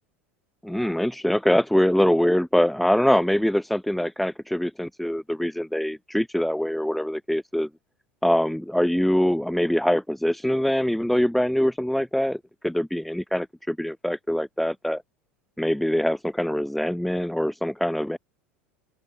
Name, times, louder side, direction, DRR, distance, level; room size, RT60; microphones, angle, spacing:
voice 1, 0.6-7.7 8.2-15.0 15.6-18.2, equal, ahead, 0.5 m, -23 dB
open air
hypercardioid pair, 80°, 6 cm